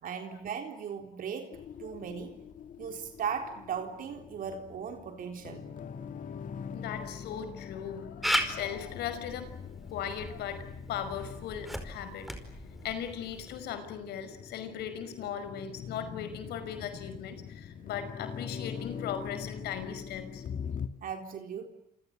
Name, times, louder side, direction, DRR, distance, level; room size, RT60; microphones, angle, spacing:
voice 1, 0.0-2.4 2.8-5.7 21.0-21.7, right 7 dB, 55° right, 3.9 m, -37 dB
sound 1, 1.5-20.9, left 7 dB, 50° left, 2.5 m, -43 dB
voice 2, 6.7-9.5 9.9-12.3 12.8-20.4, left 8 dB, 75° left, 5.5 m, -38 dB
Camera, 8.2-13.6, equal, ahead, 5.0 m, -37 dB
28.5 x 26.5 x 7.9 m
cardioid pair, 110°, 17 cm